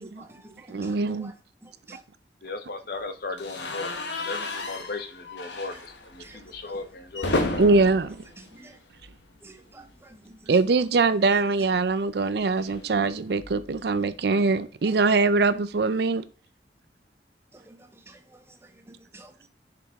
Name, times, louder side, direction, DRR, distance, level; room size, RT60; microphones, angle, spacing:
voice 1, 0.0-1.3 1.6-2.0 5.7-5.8 6.2-6.8 8.4-8.8 9.4-10.6 11.2-11.3 17.5-19.5, right 2 dB, 15° right, 0.8 m, -50 dB
voice 2, 0.7-1.3 7.6-8.2 10.5-16.2, right 3 dB, 65° right, 0.5 m, -22 dB
voice 3, 2.4-4.0 4.2-7.6, left 3 dB, 60° left, 0.8 m, -36 dB
sound 1, 3.4-9.4 9.7-9.9 10.2-10.3 11.5-13.9, left 2 dB, 80° left, 1.1 m, -34 dB
6.6 x 5.0 x 3.5 m
head